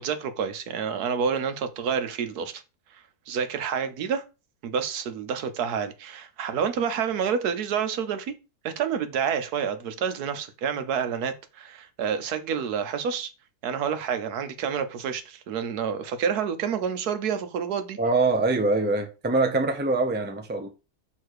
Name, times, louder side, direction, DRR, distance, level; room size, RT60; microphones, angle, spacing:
voice 1, 0.0-2.6 3.3-4.2 4.6-8.3 8.6-13.3 13.6-18.0, right 7 dB, 80° right, 1.3 m, -28 dB
voice 2, 18.0-20.7, right 3 dB, 10° right, 0.5 m, -24 dB
6.6 x 3.5 x 4.6 m
omnidirectional pair, 1.6 m